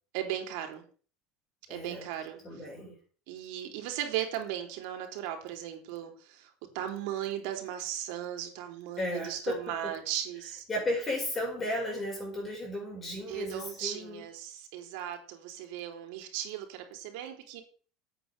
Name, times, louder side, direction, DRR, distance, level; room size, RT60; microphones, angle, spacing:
voice 1, 0.1-0.8 1.7-2.6 3.3-10.6 13.3-17.6, right 11 dB, 75° right, 4 dB, 3.6 m, -37 dB
voice 2, 1.7-2.1 2.4-3.0 9.0-9.9 10.7-14.2, left 1 dB, 15° left, -1 dB, 7.7 m, -34 dB
9.9 x 8.6 x 6.8 m, 0.41 s
cardioid pair, 145°, 0 cm